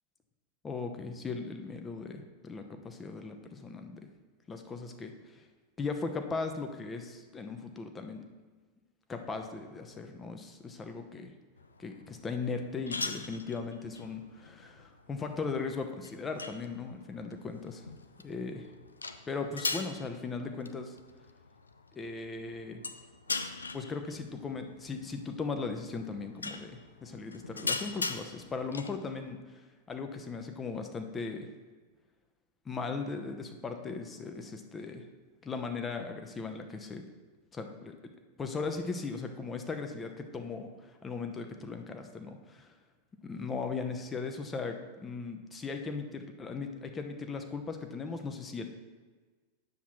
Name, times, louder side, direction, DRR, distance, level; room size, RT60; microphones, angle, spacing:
voice 1, 0.6-4.0 4.5-5.1 5.8-8.2 9.1-11.3 11.8-17.9 18.2-18.7 19.3-21.0 21.9-22.8 23.7-29.6 29.9-31.5 32.7-35.0 35.4-37.0 37.5-37.9 38.4-42.7 43.2-48.7, left 4 dB, 20° left, 5 dB, 0.8 m, -38 dB
sound 1, 11.6-29.3, left 3 dB, 75° left, 0.4 m, -41 dB
9.5 x 7.0 x 3.1 m, 1.4 s
figure-of-eight pair, 90°, 0 cm